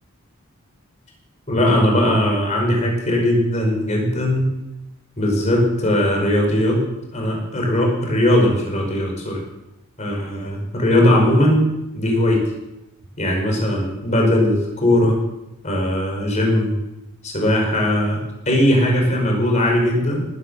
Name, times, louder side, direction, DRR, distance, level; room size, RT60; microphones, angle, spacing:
voice 1, 1.5-4.5 5.2-6.8 7.1-9.4 10.0-12.4 13.2-15.2 15.6-16.8 17.2-20.2, left 1 dB, 30° left, 0 dB, 4.8 m, -19 dB
19.0 x 9.6 x 6.8 m, 0.95 s
head